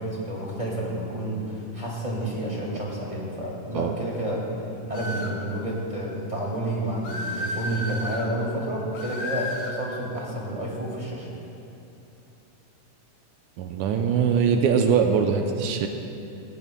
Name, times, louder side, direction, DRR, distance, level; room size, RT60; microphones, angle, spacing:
voice 1, 0.0-4.4 4.9-11.3, right 1 dB, 15° right, -4 dB, 1.8 m, -30 dB
sound 1, 4.9-5.4 7.0-8.3 8.9-9.8, left 1 dB, 85° left, 2.7 m, -32 dB
voice 2, 13.6-15.9, right 6 dB, 80° right, 4 dB, 2.0 m, -22 dB
19.0 x 15.0 x 2.2 m, 2.8 s
omnidirectional pair, 3.4 m